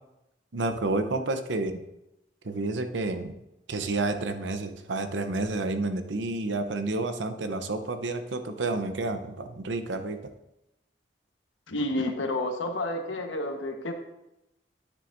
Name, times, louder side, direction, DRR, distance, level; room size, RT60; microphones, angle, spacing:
voice 1, 0.5-1.8 2.4-3.3 3.7-10.3, right 2 dB, 75° right, 8 dB, 0.8 m, -30 dB
voice 2, 11.7-13.9, left 1 dB, 85° left, 4 dB, 1.2 m, -30 dB
9.7 x 9.6 x 2.6 m, 0.90 s
head